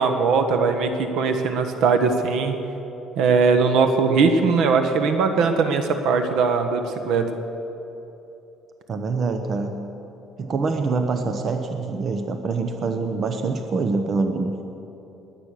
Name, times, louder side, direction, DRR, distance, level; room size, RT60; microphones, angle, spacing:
voice 1, 0.0-2.6 3.2-7.3, right 5 dB, 70° right, 7 dB, 1.3 m, -20 dB
voice 2, 8.9-9.7 10.4-14.5, right 4 dB, 40° right, 6 dB, 1.0 m, -25 dB
21.0 x 9.2 x 6.6 m, 3.0 s
cardioid pair, 130°, 0 cm